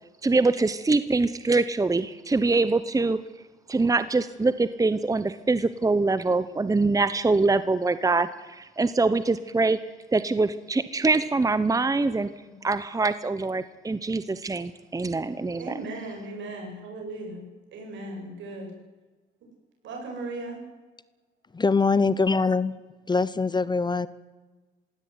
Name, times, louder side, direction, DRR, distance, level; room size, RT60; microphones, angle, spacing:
voice 1, 0.2-3.2 3.7-9.8 10.1-12.3 12.6-15.8, right 3 dB, 15° right, 14 dB, 1.0 m, -24 dB
voice 2, 15.6-17.4 17.7-18.7 19.8-20.6, right 2 dB, 70° right, 1 dB, 7.9 m, -37 dB
voice 3, 21.5-22.8 23.1-24.1, left 4 dB, 20° left, 18 dB, 0.9 m, -23 dB
21.5 x 17.0 x 9.5 m, 1.3 s
cardioid pair, 85°, 20 cm